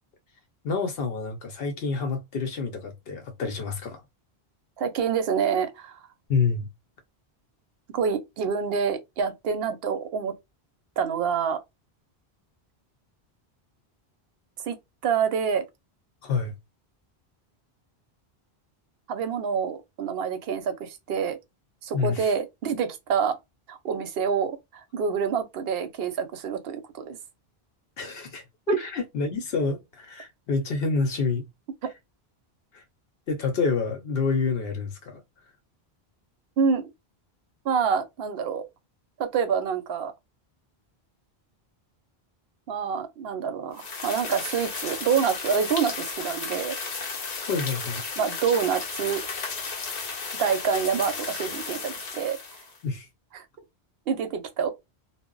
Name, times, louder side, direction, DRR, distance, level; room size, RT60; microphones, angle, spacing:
voice 1, 0.6-4.0 6.3-6.7 16.2-16.5 21.9-22.3 28.0-31.4 32.7-32.8 33.3-35.2 47.5-48.0 52.8-53.1, left 4 dB, 75° left, 0.8 m, -28 dB
voice 2, 4.8-6.0 7.9-10.3 11.0-11.6 14.7-14.8 15.0-15.6 19.1-21.4 21.8-23.4 23.7-27.2 28.7-28.8 36.6-36.9 37.6-38.6 39.2-40.1 42.7-46.8 48.2-49.2 50.3-52.4 53.3-53.4 54.1-54.7, right 6 dB, 70° right, 0.8 m, -27 dB
sound 1, 43.8-52.8, left 4 dB, 50° left, 0.6 m, -34 dB
2.0 x 2.0 x 3.6 m
omnidirectional pair, 1.1 m